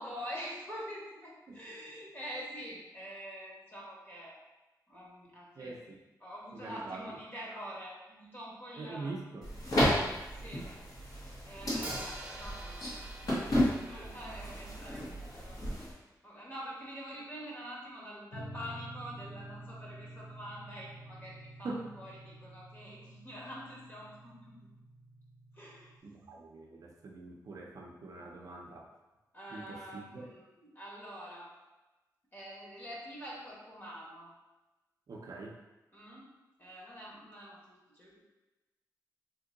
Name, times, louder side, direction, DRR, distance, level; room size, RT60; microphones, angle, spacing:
voice 1, 0.0-4.4 4.9-5.8 6.2-9.1 10.1-10.7 11.2-13.2 13.8-15.6 16.2-24.7 25.5-26.0 29.3-31.5 32.3-34.3 35.9-36.3 36.6-38.2, equal, 30° left, -5 dB, 1.2 m, -46 dB
voice 2, 5.6-6.0 6.5-7.2 8.8-9.5 21.6-21.9 26.0-28.9 29.5-30.3 35.1-35.6, right 3 dB, 55° right, -1 dB, 0.5 m, -44 dB
sound 1, 9.4-15.9, equal, 60° left, 1.2 m, -33 dB
Hi-hat, 11.8-15.8, right 1 dB, 20° right, 0.7 m, -47 dB
sound 2, 18.3-26.0, right 1 dB, 85° left, 0.7 m, -49 dB
2.9 x 2.7 x 3.8 m, 1.1 s
wide cardioid pair, 130°, 7 cm